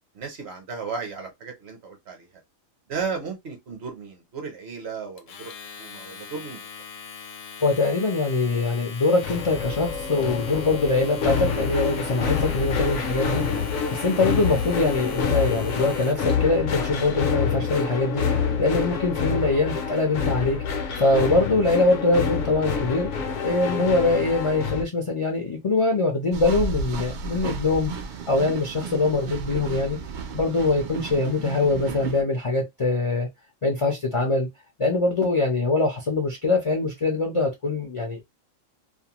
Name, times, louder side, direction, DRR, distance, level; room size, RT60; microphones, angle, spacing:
voice 1, 0.1-2.3 2.9-5.5 5.8-6.6, right 5 dB, 55° right, 0.9 m, -34 dB
Domestic sounds home sounds, 5.2-16.3, left 6 dB, 85° left, 1.1 m, -41 dB
voice 2, 7.6-23.1 23.4-27.9 28.3-30.0 30.3-33.3 33.6-34.5 34.8-38.2, left 3 dB, 45° left, 0.4 m, -23 dB
sound 1, 9.2-24.8, left 6 dB, 70° left, 0.9 m, -27 dB
sound 2, 26.3-32.2, right 4 dB, 80° right, 0.4 m, -33 dB
2.6 x 2.1 x 2.8 m
omnidirectional pair, 1.4 m